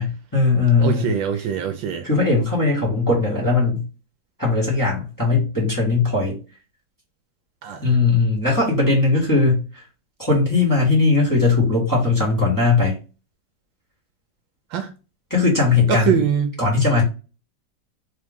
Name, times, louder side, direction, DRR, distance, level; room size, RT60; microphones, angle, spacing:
voice 1, 0.0-1.1 2.0-3.8 4.4-6.4 7.8-9.8 10.2-13.0 15.3-16.2 16.6-17.0, left 3 dB, 10° left, 1.5 m, -19 dB
voice 2, 0.8-2.1 7.6-7.9 14.7-14.9 15.9-16.6, right 7 dB, 75° right, 1.3 m, -23 dB
3.7 x 3.2 x 3.4 m
omnidirectional pair, 2.2 m